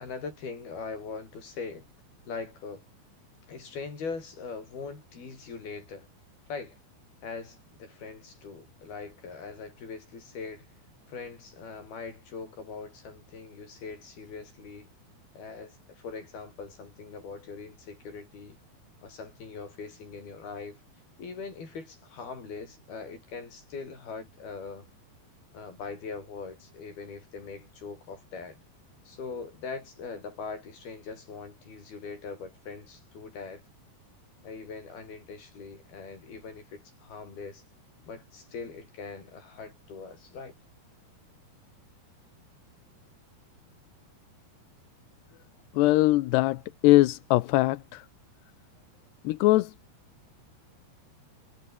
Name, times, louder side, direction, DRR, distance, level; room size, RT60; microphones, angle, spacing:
voice 1, 0.0-1.9 2.3-2.9 3.5-6.1 6.5-6.8 7.2-10.7 11.1-14.9 15.4-18.6 19.0-20.8 21.2-24.9 25.5-28.6 29.1-33.6 34.4-37.6 38.0-40.6, left 4 dB, 60° left, 8.6 m, -41 dB
voice 2, 45.7-48.1 49.2-49.7, left 18 dB, 75° left, 2.9 m, -22 dB
omnidirectional pair, 5.1 m